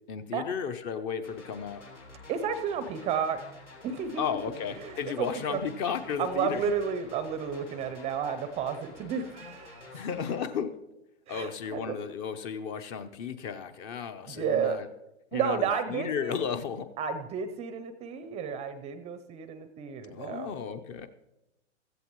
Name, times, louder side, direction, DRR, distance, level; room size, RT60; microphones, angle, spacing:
voice 1, 0.1-1.9 4.2-6.7 9.9-10.7 11.3-14.9 15.3-16.9 20.1-21.1, left 7 dB, 30° left, 10 dB, 0.8 m, -34 dB
sound 1, 1.2-10.4, left 2 dB, 90° left, 3.3 m, -50 dB
voice 2, 2.3-3.4 3.8-4.2 4.7-5.6 6.2-9.9 11.3-12.0 14.3-14.8 15.3-16.3 17.0-20.5, right 7 dB, 20° right, 11 dB, 0.6 m, -32 dB
16.0 x 14.5 x 3.1 m, 0.91 s
hypercardioid pair, 120°, 35 cm